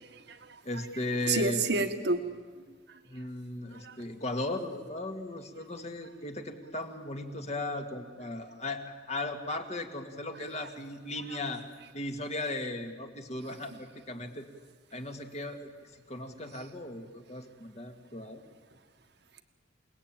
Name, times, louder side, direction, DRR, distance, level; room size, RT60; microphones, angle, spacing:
voice 1, 0.0-0.9 1.2-2.2 2.9-3.0 3.7-4.0 11.3-11.4 13.7-13.8 16.5-16.6, right 3 dB, 60° right, 8 dB, 1.6 m, -31 dB
voice 2, 0.6-1.6 3.1-11.6 11.9-14.5 14.9-15.7 16.1-18.4, left 2 dB, 35° left, 5 dB, 2.1 m, -37 dB
28.5 x 19.5 x 9.0 m, 1.5 s
head